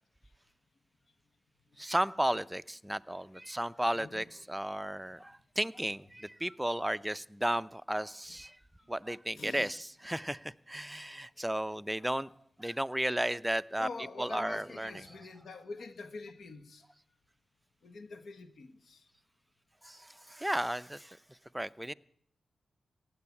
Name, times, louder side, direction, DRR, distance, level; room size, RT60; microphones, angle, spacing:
voice 1, 1.8-8.6 8.9-12.3 12.6-15.3 19.8-21.2 21.5-21.9, right 1 dB, 10° right, 0.5 m, -34 dB
voice 2, 3.1-3.4 3.9-4.5 8.3-8.4 9.3-9.8 13.8-16.8 17.8-19.1, left 3 dB, 70° left, 1.5 m, -46 dB
16.0 x 7.7 x 9.8 m
cardioid pair, 70°, 0 cm